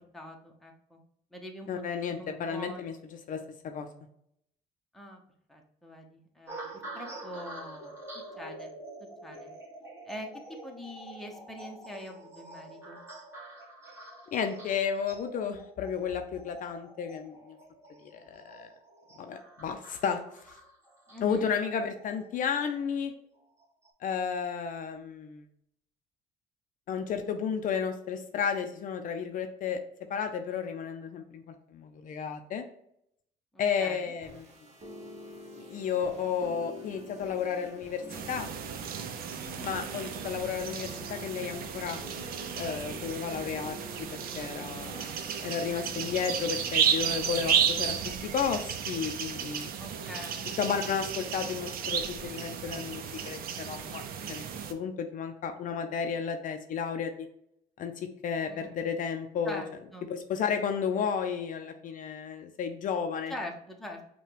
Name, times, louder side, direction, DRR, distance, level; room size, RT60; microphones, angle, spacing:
voice 1, 0.1-1.0 1.3-1.8 2.1-2.9 4.9-5.2 5.5-6.7 6.9-7.9 8.4-8.7 9.2-9.5 10.1-10.3 10.6-13.0 21.1-21.4 33.5-34.1 39.4-39.8 49.8-50.6 58.5-58.8 59.4-59.7 59.9-60.1 63.3-64.0, left 1 dB, ahead, 1 dB, 0.7 m, -43 dB
voice 2, 1.7-3.0 3.3-3.9 14.3-17.6 18.0-18.7 19.2-20.5 21.2-23.1 24.0-25.4 26.9-29.8 30.1-32.6 33.6-34.5 35.6-38.5 39.6-42.0 42.6-44.1 44.3-45.0 45.4-48.0 48.3-49.7 50.6-54.0 54.3-54.4 54.7-57.3 57.8-59.6 60.1-63.3, left 7 dB, 50° left, 6 dB, 0.5 m, -32 dB
sound 1, 6.5-22.9 23.6-23.9, right 1 dB, 15° right, 1.5 m, -47 dB
sound 2, 34.0-46.8, left 1 dB, 40° right, 1.0 m, -48 dB
sound 3, 38.1-54.7, right 7 dB, 60° right, 0.5 m, -33 dB
5.6 x 2.2 x 3.3 m, 0.73 s
cardioid pair, 110°, 17 cm